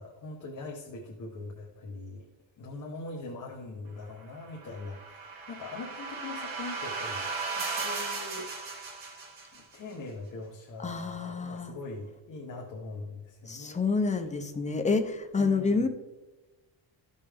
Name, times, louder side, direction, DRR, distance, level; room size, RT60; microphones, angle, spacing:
voice 1, 0.0-2.3 2.6-9.2 9.5-13.8 14.1-14.3 15.4-15.9, left 3 dB, 45° left, 0 dB, 1.0 m, -42 dB
sound 1, 4.5-9.8, right 4 dB, 55° right, 2.0 m, -36 dB
voice 2, 10.8-11.7 13.5-15.9, left 4 dB, 15° left, 5 dB, 0.6 m, -28 dB
13.5 x 5.4 x 3.4 m, 1.1 s
wide cardioid pair, 175°, 45 cm